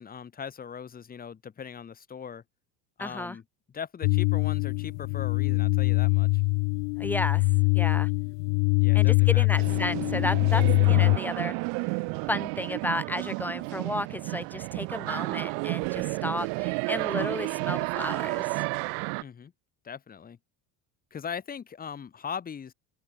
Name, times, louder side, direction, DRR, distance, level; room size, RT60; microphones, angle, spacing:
voice 1, 0.0-2.4 3.0-3.4 3.7-6.4 8.8-9.6 19.2-19.5 19.8-20.4 21.1-22.7, left 7 dB, 20° left, 2.0 m, -39 dB
voice 2, 3.0-3.4 7.0-7.5 7.7-8.1 8.9-11.6 12.3-18.6, left 1 dB, 5° left, 1.7 m, -33 dB
sound 1, 4.0-11.2, left 40 dB or more, 85° left, 1.6 m, -23 dB
sound 2, 9.6-19.2, right 38 dB, 80° right, 2.8 m, -31 dB
open air
cardioid pair, 165°, 42 cm